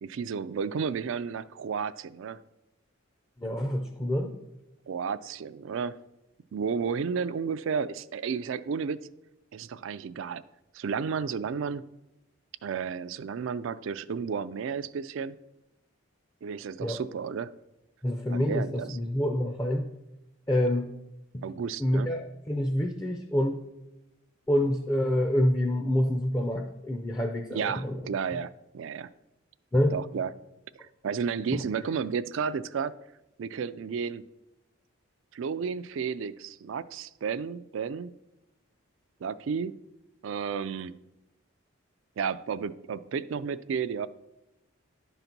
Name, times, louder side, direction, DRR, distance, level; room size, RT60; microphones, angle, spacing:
voice 1, 0.0-2.4 4.9-6.0 6.5-9.1 9.5-10.4 10.7-11.8 12.6-15.4 16.4-17.5 18.3-19.0 21.4-22.1 27.5-29.1 29.9-30.3 30.7-32.9 33.4-34.2 35.3-38.1 39.2-39.8 40.2-41.0 42.2-44.1, right 6 dB, 65° right, 15 dB, 0.3 m, -32 dB
voice 2, 3.4-4.3 16.8-17.0 18.0-19.9 20.5-20.9 21.3-21.4 21.8-23.6 24.5-28.0 29.7-30.0 31.5-31.6, left 1 dB, 15° left, 5 dB, 0.4 m, -27 dB
10.5 x 4.0 x 5.9 m, 0.93 s
head